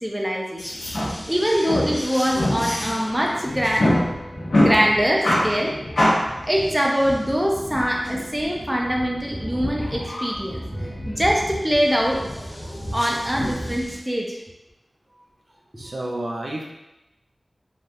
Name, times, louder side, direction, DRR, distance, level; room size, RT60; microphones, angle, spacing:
voice 1, 0.0-3.9 4.5-5.7 6.4-10.6 11.1-14.4 15.7-15.9, equal, 10° right, -2 dB, 0.5 m, -23 dB
sound 1, 0.6-14.0, left 1 dB, 85° left, 0.8 m, -27 dB
voice 2, 15.8-16.6, right 1 dB, 60° right, -2 dB, 0.5 m, -30 dB
3.4 x 2.7 x 2.4 m, 0.94 s
wide cardioid pair, 75°, 0 cm